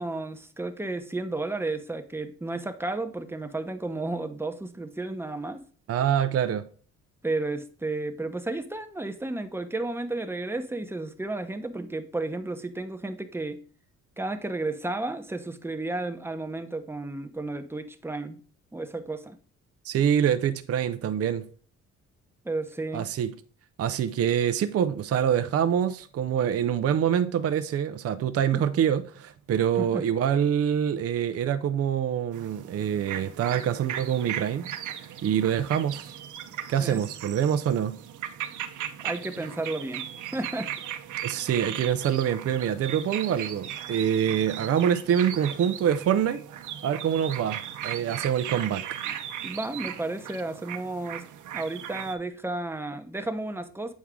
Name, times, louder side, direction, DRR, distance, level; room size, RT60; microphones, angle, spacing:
voice 1, 0.0-5.6 7.2-13.6 14.2-18.4 18.7-19.4 22.4-23.1 28.5-28.6 29.8-30.0 36.8-37.0 39.0-40.0 40.3-40.7 49.1-49.2 49.4-51.2 51.5-53.9, right 2 dB, 10° right, 0.9 m, -32 dB
voice 2, 5.9-6.6 19.8-21.5 22.9-23.3 23.8-34.7 35.2-36.2 36.7-38.0 41.2-46.4 46.8-48.9, right 9 dB, 50° right, 0.6 m, -25 dB
sound 1, 32.3-52.1, right 10 dB, 80° right, 0.8 m, -37 dB
8.4 x 4.6 x 3.7 m
cardioid pair, 90°, 30 cm